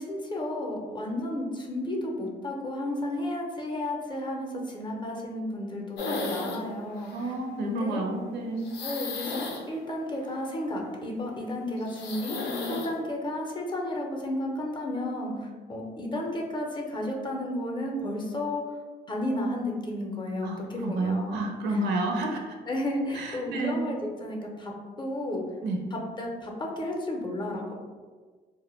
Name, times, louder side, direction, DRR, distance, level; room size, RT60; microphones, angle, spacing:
voice 1, 0.0-7.3 7.6-8.0 8.8-9.4 9.7-18.6 19.1-21.8 22.7-24.7 25.0-25.4 25.9-27.7, left 1 dB, 25° left, 0 dB, 0.5 m, -32 dB
sound 1, 6.0-6.7 7.0-7.4 8.6-10.5 11.8-12.9, left 3 dB, 75° left, 0.5 m, -34 dB
voice 2, 7.1-8.7 20.4-22.4 23.1-23.9 25.6-25.8, right 2 dB, 70° right, 2 dB, 0.5 m, -30 dB
2.2 x 2.1 x 3.1 m, 1.5 s
cardioid pair, 80°, 18 cm